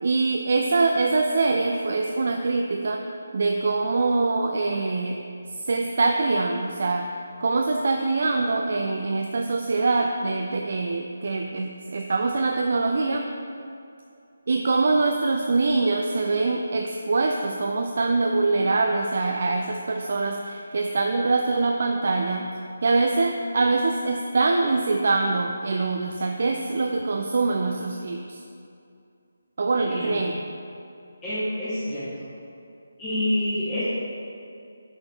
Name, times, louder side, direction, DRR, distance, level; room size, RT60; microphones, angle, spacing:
voice 1, 0.0-3.0 3.3-5.2 5.7-7.1 7.4-13.3 14.5-22.5 22.8-28.4 29.6-30.4, right 3 dB, 50° right, 2 dB, 0.4 m, -24 dB
voice 2, 29.8-30.2 31.2-32.1 33.0-33.8, left 1 dB, 15° left, -13 dB, 1.4 m, -27 dB
9.1 x 4.1 x 3.3 m, 2.5 s
figure-of-eight pair, 150°, 0 cm